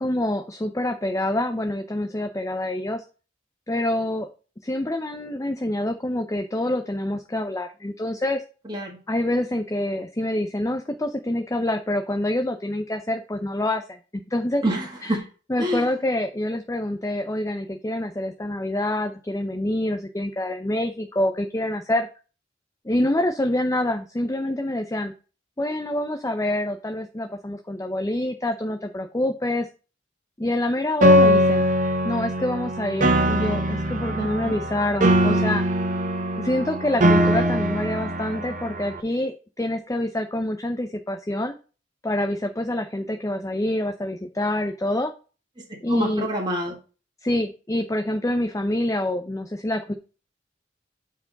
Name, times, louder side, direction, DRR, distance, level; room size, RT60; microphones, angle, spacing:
voice 1, 0.0-3.0 3.7-4.3 4.6-8.4 9.1-14.6 15.0-15.2 15.5-22.1 22.8-25.1 25.6-29.7 30.4-31.6 32.0-35.6 36.4-41.6 42.0-45.1 45.8-46.3 47.2-49.9, left 1 dB, 15° left, 5 dB, 0.6 m, -26 dB
voice 2, 8.6-9.0 14.6-15.2 15.6-15.8 34.0-34.6 45.9-46.7, right 1 dB, 25° right, -2 dB, 1.7 m, -27 dB
Piano, 31.0-39.0, equal, 45° right, 0.9 m, -21 dB
8.2 x 4.7 x 3.9 m, 0.34 s
head